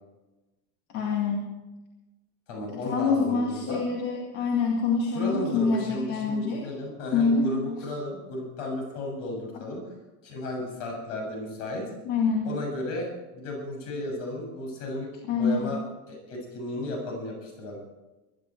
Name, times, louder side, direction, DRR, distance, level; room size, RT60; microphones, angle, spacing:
voice 1, 0.9-1.5 2.8-6.6 7.1-7.5 12.0-12.5 15.3-15.7, left 4 dB, 40° left, -1 dB, 2.2 m, -26 dB
voice 2, 2.5-3.8 5.1-9.8 10.2-11.8 12.5-13.1 13.3-15.8 16.1-17.8, left 1 dB, 60° left, 1 dB, 7.3 m, -34 dB
21.0 x 11.5 x 4.6 m, 1.1 s
supercardioid pair, 175°, 42 cm